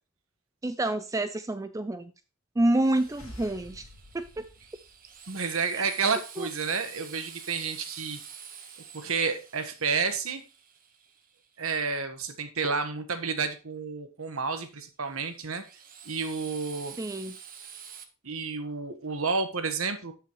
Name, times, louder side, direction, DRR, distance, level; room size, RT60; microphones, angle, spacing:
voice 1, 0.6-2.1 2.6-3.9 4.1-4.4 5.8-5.9 6.4-6.5 17.0-17.4, right 1 dB, 15° right, 11 dB, 0.4 m, -28 dB
Drill, 2.7-11.6 15.0-18.0, right 7 dB, 40° right, 1.3 m, -48 dB
sound 1, 2.9-5.6, left 1 dB, 75° left, 2.0 m, -50 dB
voice 2, 5.3-8.2 8.9-10.4 11.6-15.6 16.0-17.0 18.2-20.1, right 5 dB, 75° right, 9 dB, 1.3 m, -30 dB
13.0 x 5.7 x 3.1 m, 0.32 s
head